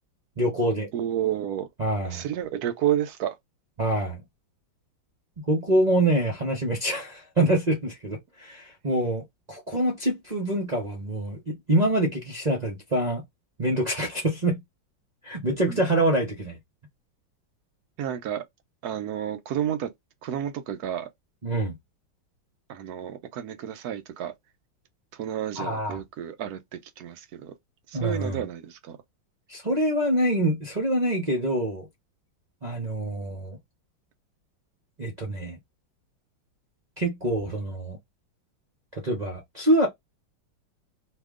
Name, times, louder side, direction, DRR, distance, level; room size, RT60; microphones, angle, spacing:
voice 1, 0.4-0.9 1.8-2.3 3.8-4.2 5.5-13.2 13.6-14.6 15.2-16.6 21.4-21.7 25.6-26.0 27.9-28.4 29.5-31.9 32.6-33.6 35.0-35.6 37.0-38.0 38.9-39.9, right 1 dB, 35° right, 0.6 m, -25 dB
voice 2, 0.9-1.7 2.0-3.3 15.7-15.8 18.0-18.4 18.8-19.9 20.2-21.1 22.7-24.3 25.1-27.5 27.9-29.0, right 10 dB, 65° right, 1.0 m, -30 dB
2.9 x 2.6 x 3.6 m
omnidirectional pair, 2.1 m